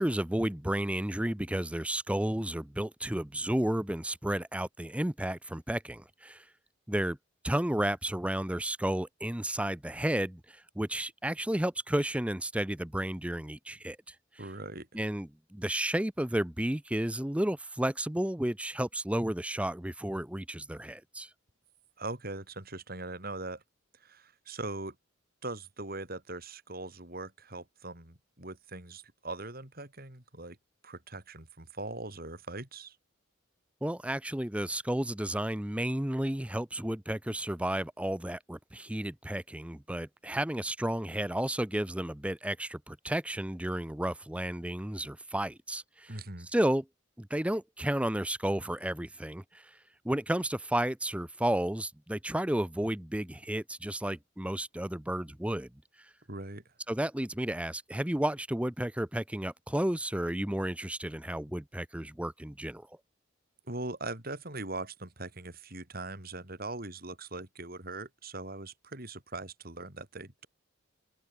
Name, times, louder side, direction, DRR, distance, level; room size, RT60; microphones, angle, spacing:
voice 1, 0.0-6.4 6.9-7.2 7.4-14.1 14.9-21.3 33.8-46.2 46.5-46.9 47.2-49.7 50.0-55.7 56.9-62.9, right 1 dB, 5° right, 0.6 m, -32 dB
voice 2, 14.4-14.9 22.0-23.6 24.0-25.0 25.4-30.6 30.8-33.0 46.1-46.5 56.3-56.6 63.7-70.5, right 2 dB, 45° right, 4.7 m, -41 dB
open air
head